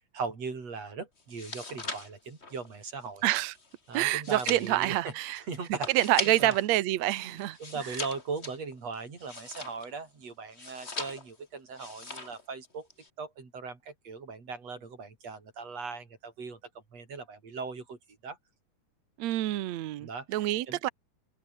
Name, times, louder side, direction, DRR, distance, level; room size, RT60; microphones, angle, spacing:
voice 1, 0.1-3.2 3.9-5.9 6.4-6.5 7.1-12.9 13.2-16.6 16.9-18.0 18.2-18.4 20.0-20.8, right 4 dB, 40° right, 5.8 m, -39 dB
sound 1, 1.2-6.7 7.0-10.0 10.5-11.4 11.7-12.4 12.7-13.1, left 3 dB, 20° left, 2.2 m, -40 dB
voice 2, 3.2-3.5 3.9-5.4 5.9-7.6 7.9-8.0 19.2-20.9, right 15 dB, 80° right, 1.5 m, -27 dB
omnidirectional pair, 4.6 m